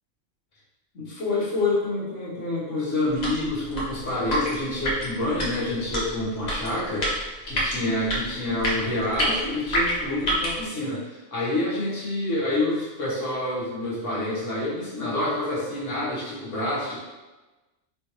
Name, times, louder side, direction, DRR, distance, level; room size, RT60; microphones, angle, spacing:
voice 1, 0.9-17.0, left 2 dB, 80° left, -7 dB, 1.8 m, -27 dB
sound 1, 3.1-10.6, equal, 35° left, 1.0 m, -28 dB
4.3 x 3.4 x 3.1 m, 1.1 s
omnidirectional pair, 1.3 m